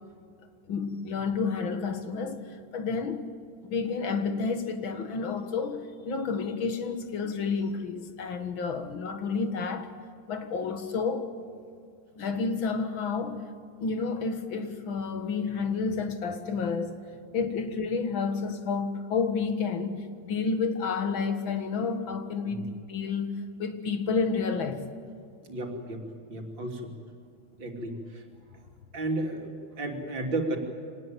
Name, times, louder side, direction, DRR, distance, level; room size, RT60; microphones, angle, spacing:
voice 1, 0.7-3.3 3.6-9.9 10.3-11.3 12.1-13.4 13.8-16.9 17.3-22.6 22.9-24.8, left 5 dB, 90° left, 2.4 m, -30 dB
voice 2, 25.5-26.0 26.3-26.9 27.6-28.2 28.9-30.6, right 2 dB, 70° right, 3.7 m, -33 dB
25.5 x 19.0 x 9.2 m
omnidirectional pair, 2.1 m